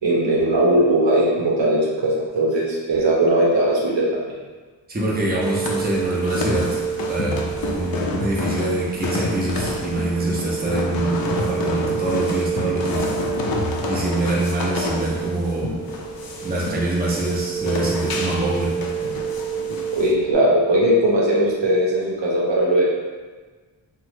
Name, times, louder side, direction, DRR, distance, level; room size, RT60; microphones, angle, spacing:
voice 1, 0.0-4.3 19.9-22.8, right 1 dB, 70° right, -5 dB, 0.8 m, -19 dB
voice 2, 4.9-13.1 13.9-15.8 16.4-18.7, right 1 dB, 20° right, -5 dB, 0.6 m, -25 dB
sound 1, 5.1-20.3, right 7 dB, 40° right, 1.2 m, -29 dB
sound 2, 5.4-20.1, left 3 dB, 50° left, 0.5 m, -29 dB
2.9 x 2.2 x 3.2 m, 1.4 s
wide cardioid pair, 55°, 46 cm